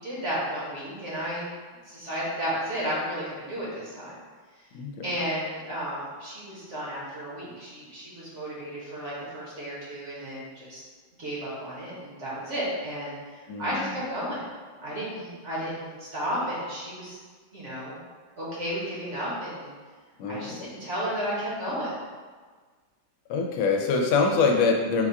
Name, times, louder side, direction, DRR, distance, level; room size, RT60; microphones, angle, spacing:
voice 1, 0.0-1.5 1.8-4.1 5.0-10.8 11.2-14.5 14.8-17.2 17.5-18.0 18.4-19.7 20.3-21.9, equal, 45° right, -7 dB, 1.2 m, -33 dB
voice 2, 4.7-5.1 13.5-14.0 20.2-20.7 23.3-25.1, left 4 dB, 90° left, 2 dB, 1.4 m, -25 dB
4.1 x 2.3 x 4.6 m, 1.5 s
omnidirectional pair, 2.2 m